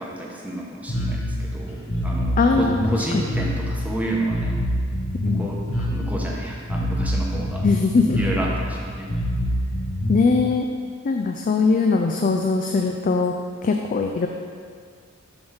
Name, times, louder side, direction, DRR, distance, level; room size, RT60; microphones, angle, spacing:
voice 1, 0.0-4.6 5.2-7.7 8.2-9.1, right 1 dB, 10° right, -3 dB, 0.9 m, -30 dB
Bass guitar, 0.9-10.4, equal, 70° left, 1.3 m, -26 dB
voice 2, 2.4-2.8 3.1-3.2 5.2-5.5 7.6-8.2 10.1-10.6 11.0-13.3 13.6-14.3, left 4 dB, 40° left, 3 dB, 0.3 m, -20 dB
7.0 x 3.5 x 5.5 m, 2.1 s
head